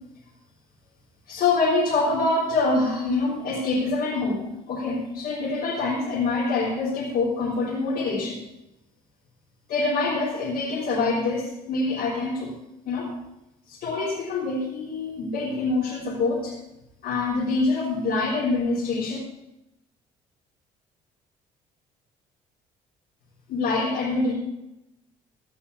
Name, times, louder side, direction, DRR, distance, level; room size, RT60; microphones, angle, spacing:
voice 1, 1.3-4.4 4.7-8.4 9.7-12.5 12.9-13.1 13.7-16.5 17.0-19.2 23.5-24.3, left 3 dB, 65° left, -6 dB, 3.6 m, -25 dB
15.5 x 5.6 x 8.1 m, 0.89 s
hypercardioid pair, 65°, 17 cm